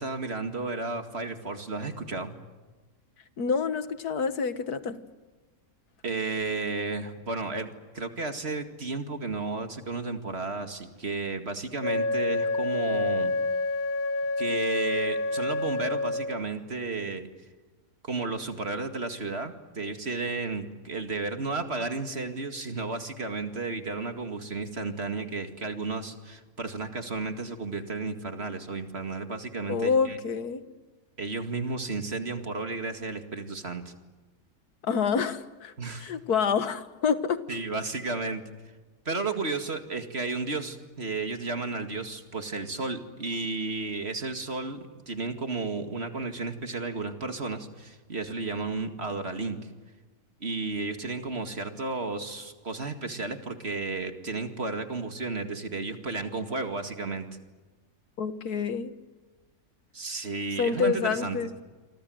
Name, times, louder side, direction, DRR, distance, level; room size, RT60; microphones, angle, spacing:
voice 1, 0.0-2.4 6.0-7.7 7.9-13.3 14.4-17.3 18.0-30.2 31.2-33.9 35.8-36.1 37.5-38.4 39.1-49.6 50.4-57.3 59.9-61.4, right 3 dB, 45° right, 7 dB, 2.3 m, -33 dB
voice 2, 3.4-5.0 29.7-30.6 34.8-35.7 36.0-37.4 58.2-58.9 60.6-61.6, left 6 dB, 85° left, 11 dB, 1.9 m, -27 dB
Wind instrument woodwind instrument, 11.8-16.4, left 3 dB, 70° left, 1.9 m, -28 dB
28.5 x 24.5 x 7.9 m, 1.3 s
omnidirectional pair, 1.6 m